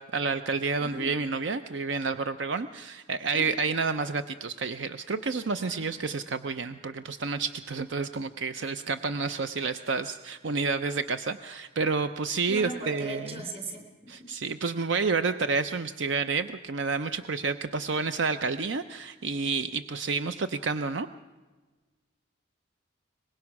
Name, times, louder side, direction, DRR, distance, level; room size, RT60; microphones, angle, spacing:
voice 1, 0.0-13.4 14.1-21.1, right 4 dB, 65° right, 11 dB, 0.6 m, -30 dB
voice 2, 5.6-6.1 12.5-13.9 14.2-14.3, right 2 dB, 30° right, 4 dB, 3.5 m, -38 dB
23.5 x 20.5 x 6.0 m, 1.3 s
head